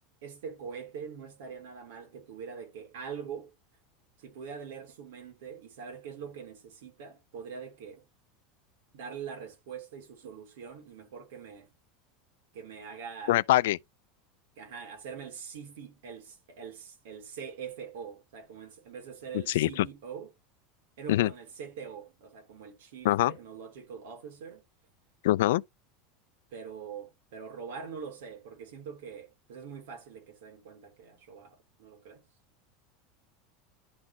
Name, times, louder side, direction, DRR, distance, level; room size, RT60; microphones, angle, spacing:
voice 1, 0.2-3.5 4.2-8.0 8.9-11.7 12.5-13.4 14.6-20.3 21.0-24.6 26.5-32.2, right 6 dB, 80° right, 3.2 m, -43 dB
voice 2, 13.3-13.8 19.5-19.9 21.1-21.3 23.0-23.3 25.2-25.6, left 15 dB, 85° left, 0.4 m, -23 dB
11.5 x 4.1 x 2.8 m
supercardioid pair, 180°, 0 cm